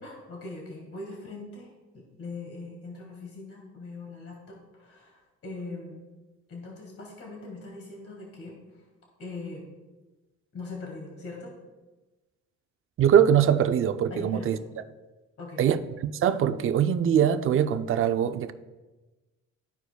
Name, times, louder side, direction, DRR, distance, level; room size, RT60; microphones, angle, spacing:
voice 1, 0.0-6.0 6.5-8.8 9.2-9.7 10.5-11.6 14.1-14.6 15.4-15.6, left 3 dB, 50° left, 1.8 m, -41 dB
voice 2, 13.0-14.6 15.6-18.5, right 9 dB, 45° right, 0.4 m, -22 dB
13.0 x 4.5 x 2.2 m
cardioid pair, 90°, 30 cm